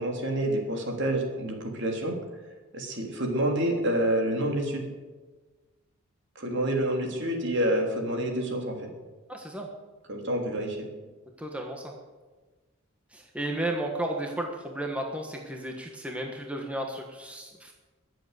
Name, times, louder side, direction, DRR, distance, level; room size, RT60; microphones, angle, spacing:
voice 1, 0.0-2.1 2.7-4.8 6.3-8.9 10.1-10.9, right 1 dB, 55° right, 2 dB, 3.1 m, -28 dB
voice 2, 9.3-9.7 11.4-11.9 13.1-17.7, right 1 dB, 5° right, 1 dB, 1.4 m, -33 dB
22.5 x 7.9 x 8.1 m, 1.3 s
head